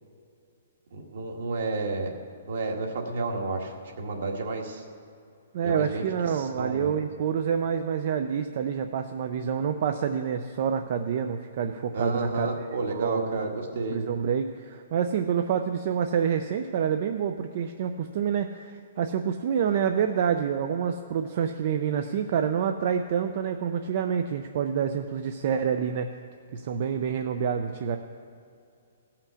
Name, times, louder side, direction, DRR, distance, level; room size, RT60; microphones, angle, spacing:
voice 1, 0.9-2.1 2.5-4.8 5.6-6.0 6.3-7.0 11.9-14.0, right 3 dB, 55° right, 2 dB, 1.6 m, -31 dB
voice 2, 5.5-13.5 13.9-26.1 26.5-28.0, right 7 dB, 35° right, 7 dB, 0.4 m, -27 dB
17.0 x 5.8 x 6.9 m, 2.5 s
hypercardioid pair, 180°, 0 cm